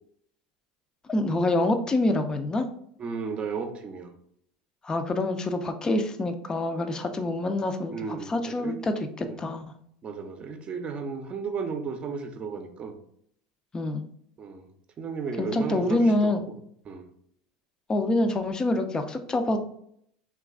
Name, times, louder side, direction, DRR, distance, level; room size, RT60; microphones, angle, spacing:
voice 1, 1.1-2.7 4.8-9.6 13.7-14.0 15.4-16.4 17.9-19.6, left 2 dB, 20° left, 6 dB, 0.5 m, -26 dB
voice 2, 3.0-4.1 7.9-8.8 9.2-9.3 10.0-12.9 14.4-14.6 15.0-16.4 16.9-17.0, right 5 dB, 35° right, 6 dB, 0.6 m, -34 dB
3.0 x 2.4 x 3.6 m, 0.67 s
hypercardioid pair, 95°, 3 cm